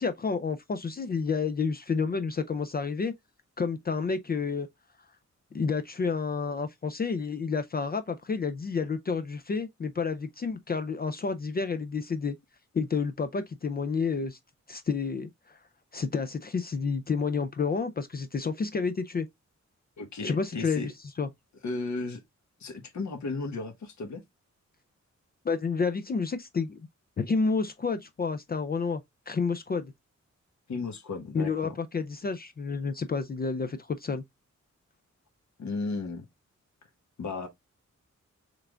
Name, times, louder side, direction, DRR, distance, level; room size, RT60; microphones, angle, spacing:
voice 1, 0.0-3.1 3.6-4.7 5.5-12.4 12.7-14.4 14.7-15.6 15.9-19.3 20.2-20.9 21.2-21.3 25.4-26.8 27.2-29.9 31.3-34.2, left 5 dB, 35° left, 0.4 m, -30 dB
voice 2, 20.0-20.9 21.6-22.2 22.6-24.2 30.7-31.7 35.6-36.2 37.2-37.5, left 3 dB, 70° left, 1.3 m, -34 dB
5.8 x 3.3 x 2.3 m
wide cardioid pair, 175°, 29 cm